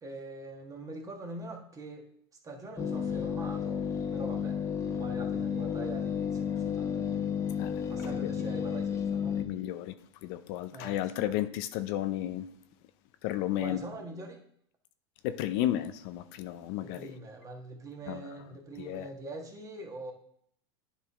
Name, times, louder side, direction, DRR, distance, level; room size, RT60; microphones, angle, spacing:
voice 1, 0.0-2.1 2.4-4.6 5.0-7.1 7.9-9.4 10.7-10.9 13.6-14.4 16.8-20.1, right 2 dB, 25° right, 1.5 m, -43 dB
sound 1, 2.8-9.4, left 7 dB, 20° left, 1.0 m, -32 dB
voice 2, 9.3-9.9 10.2-12.5 13.2-13.8 15.2-17.1 18.1-18.4 18.8-19.1, left 13 dB, 60° left, 0.5 m, -33 dB
10.5 x 4.1 x 3.6 m
hypercardioid pair, 105°, 15 cm